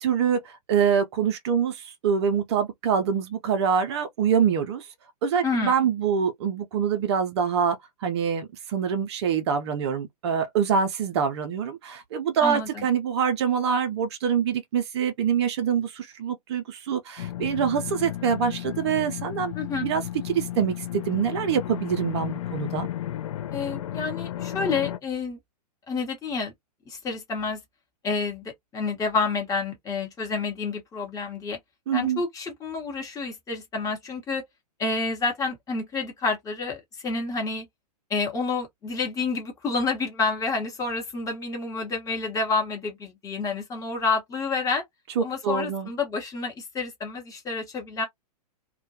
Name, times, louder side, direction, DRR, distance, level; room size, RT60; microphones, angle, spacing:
voice 1, 0.0-4.9 5.2-19.5 19.8-22.9 31.9-32.2 45.2-45.9, right 7 dB, 40° right, 0.5 m, -25 dB
voice 2, 5.4-5.8 12.4-12.9 19.5-19.9 23.5-25.4 25.9-26.5 26.9-27.6 28.0-31.6 31.9-34.4 34.8-37.6 38.1-44.8 45.2-48.1, left 4 dB, 15° left, 0.9 m, -29 dB
sound 1, 17.2-25.0, left 12 dB, 50° left, 0.4 m, -33 dB
2.2 x 2.1 x 2.7 m
figure-of-eight pair, 110°, 21 cm